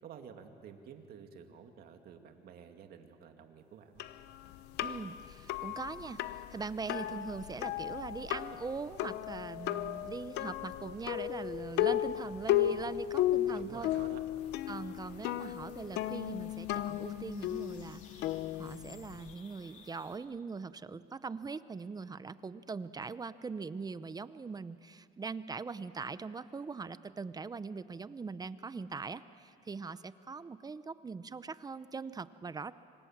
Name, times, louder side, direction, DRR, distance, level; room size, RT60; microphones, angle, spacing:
voice 1, 0.0-4.1 13.5-14.2, right 7 dB, 65° right, 5 dB, 2.3 m, -51 dB
sound 1, 4.0-19.3, left 13 dB, 85° left, 0.9 m, -35 dB
voice 2, 4.8-13.9 14.7-18.2 18.5-32.7, right 4 dB, 25° right, 15 dB, 0.8 m, -41 dB
sound 2, 14.3-20.2, left 5 dB, 45° left, 3.4 m, -59 dB
26.0 x 25.5 x 7.4 m, 2.4 s
cardioid pair, 110°, 17 cm